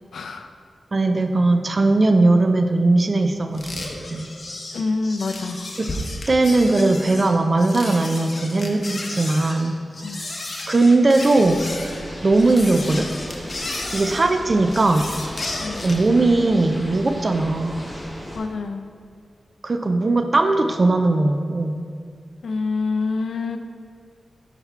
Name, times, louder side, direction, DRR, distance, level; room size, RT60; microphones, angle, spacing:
voice 1, 0.1-0.5 4.7-5.6 10.0-10.2 15.6-15.9 18.3-18.9 22.4-23.6, left 4 dB, 80° left, 6 dB, 0.4 m, -26 dB
voice 2, 0.9-3.7 4.1-4.3 5.8-5.9 6.3-9.8 10.7-11.6 12.2-13.1 13.9-15.1 15.8-17.9 19.6-21.8, right 2 dB, 35° right, 7 dB, 0.4 m, -19 dB
sound 1, 3.5-16.1, left 2 dB, 40° left, 0.8 m, -33 dB
sound 2, 11.4-18.4, equal, 5° right, 1.2 m, -36 dB
5.8 x 5.8 x 4.5 m, 2.1 s
wide cardioid pair, 160°, 0 cm